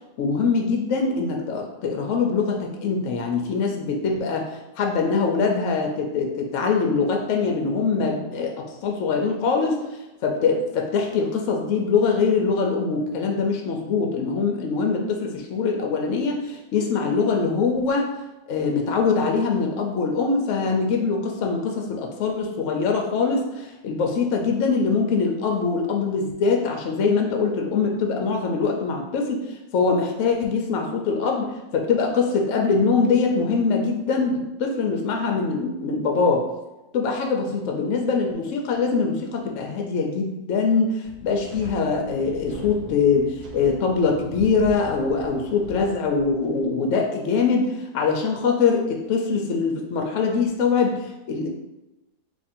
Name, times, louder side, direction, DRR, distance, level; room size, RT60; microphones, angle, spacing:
voice 1, 0.2-8.5 8.8-9.8 10.2-18.1 18.5-29.4 29.7-36.4 36.9-51.5, left 4 dB, 70° left, 2 dB, 0.8 m, -23 dB
Wind, 41.0-46.7, equal, 80° right, 1.2 m, -40 dB
3.0 x 2.5 x 4.2 m, 1.0 s
omnidirectional pair, 1.6 m